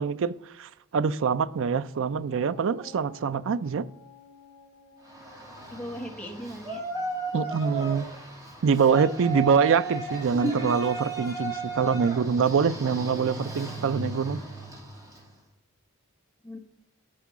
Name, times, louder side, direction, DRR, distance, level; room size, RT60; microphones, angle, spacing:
voice 1, 0.0-3.9 7.3-8.1 8.6-14.4, right 6 dB, 60° right, 0.4 m, -25 dB
Dog, 2.0-8.6, left 3 dB, 35° left, 3.6 m, -53 dB
Yell, 5.0-15.3, right 3 dB, 15° right, 2.5 m, -35 dB
voice 2, 5.7-6.8 10.3-10.7 16.4-16.6, equal, 5° left, 1.4 m, -34 dB
9.6 x 4.6 x 7.2 m
head